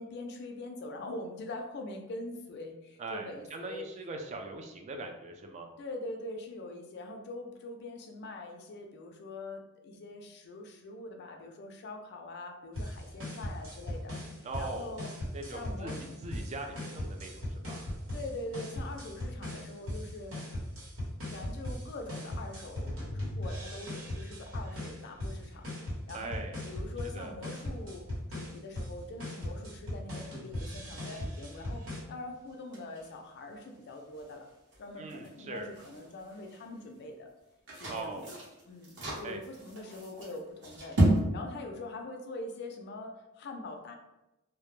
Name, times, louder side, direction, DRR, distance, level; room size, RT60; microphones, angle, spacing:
voice 1, 0.0-3.9 5.8-15.2 15.5-16.0 18.1-20.4 21.3-34.5 34.8-37.3 37.7-38.4 38.7-41.0 41.3-43.9, left 2 dB, 55° left, 4 dB, 0.4 m, -43 dB
voice 2, 3.0-5.7 14.4-14.9 15.3-15.9 16.2-17.8 26.1-26.6 27.1-27.3 35.0-35.7 37.9-38.3 39.2-39.4, right 3 dB, 35° right, 3 dB, 0.3 m, -41 dB
sound 1, 12.8-32.0, left 1 dB, 80° right, 1.1 m, -39 dB
sound 2, 24.8-41.2, right 1 dB, 60° right, 0.8 m, -37 dB
2.1 x 2.0 x 3.0 m, 0.95 s
head